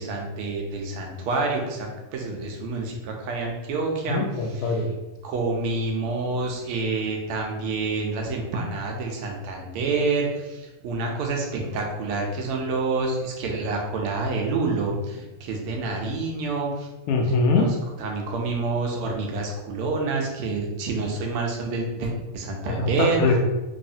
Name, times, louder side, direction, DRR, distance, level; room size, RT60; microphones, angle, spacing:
voice 1, 0.0-4.2 4.5-4.8 5.2-16.9 17.5-17.7 18.0-23.2, right 3 dB, 85° right, 1 dB, 1.7 m, -28 dB
voice 2, 4.1-4.9 17.1-17.6 22.8-23.4, left 3 dB, 85° left, 2 dB, 1.6 m, -22 dB
4.1 x 3.1 x 2.7 m, 1.1 s
omnidirectional pair, 2.4 m